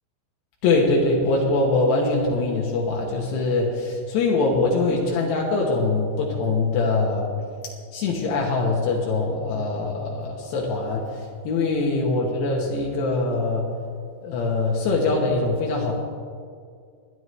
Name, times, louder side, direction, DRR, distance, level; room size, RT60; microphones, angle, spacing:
voice 1, 0.6-7.3 7.9-13.7 14.2-15.9, left 3 dB, 75° left, -2 dB, 3.3 m, -23 dB
20.5 x 11.0 x 3.3 m, 2.2 s
omnidirectional pair, 5.1 m